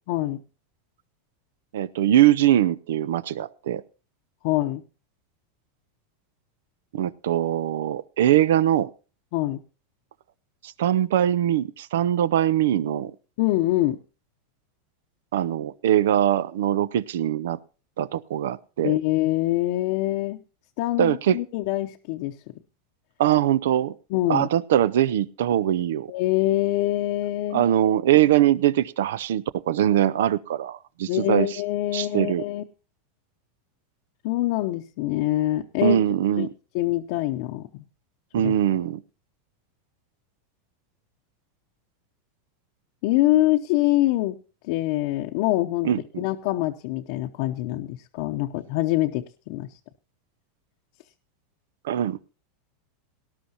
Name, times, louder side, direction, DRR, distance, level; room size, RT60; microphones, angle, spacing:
voice 1, 0.1-0.4 4.4-4.8 9.3-9.6 13.4-14.0 18.8-20.4 20.8-22.4 24.1-24.5 26.1-27.6 31.1-32.6 34.2-36.0 36.4-36.5 36.7-37.8 38.4-38.5 43.0-44.4 44.6-45.9 46.2-49.7, left 16 dB, 60° left, 3 dB, 0.7 m, -24 dB
voice 2, 1.7-3.8 6.9-8.9 10.6-13.1 15.3-17.6 18.0-18.9 21.0-21.4 23.2-23.9 24.3-26.1 27.5-31.6 31.9-32.4 35.8-36.5 38.3-39.0 45.8-46.2 51.8-52.2, right 11 dB, 85° right, 19 dB, 0.5 m, -22 dB
18.5 x 11.5 x 2.9 m, 0.34 s
supercardioid pair, 130°, 0 cm